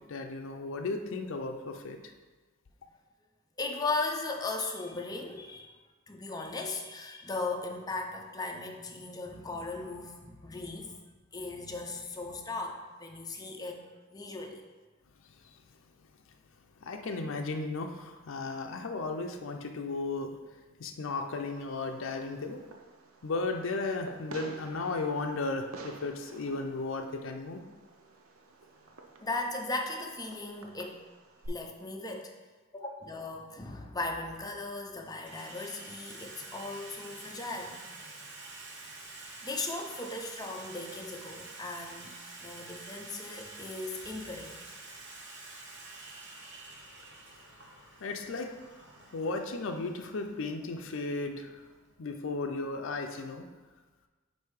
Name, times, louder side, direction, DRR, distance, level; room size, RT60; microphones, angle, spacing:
voice 1, 0.1-2.0 16.8-20.4 20.8-22.6 23.2-27.6 48.0-48.5 49.1-51.6 52.0-53.5, left 3 dB, 65° left, 4 dB, 0.5 m, -35 dB
voice 2, 3.6-5.8 6.1-11.0 11.3-14.6 29.2-31.0 31.5-32.3 32.7-37.8 39.4-42.1 42.4-44.6, left 3 dB, 20° left, 2 dB, 0.6 m, -37 dB
Fireworks, 21.5-31.5, right 3 dB, 85° right, 0.6 m, -51 dB
Water tap faucet / Sink (filling or washing), 33.1-33.2 34.2-34.6 34.9-52.5, right 2 dB, 60° right, 1.0 m, -48 dB
8.1 x 2.7 x 4.7 m, 1.3 s
head